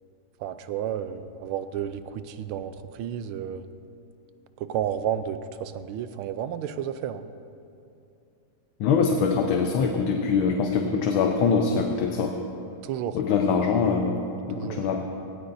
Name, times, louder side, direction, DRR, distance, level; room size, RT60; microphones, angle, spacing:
voice 1, 0.4-3.7 4.6-7.3 12.8-13.2 14.6-15.0, right 9 dB, 90° right, 11 dB, 1.5 m, -32 dB
voice 2, 8.8-12.4 13.1-15.1, left 5 dB, 80° left, 3 dB, 1.6 m, -23 dB
18.5 x 17.0 x 2.6 m, 2.7 s
omnidirectional pair, 2.2 m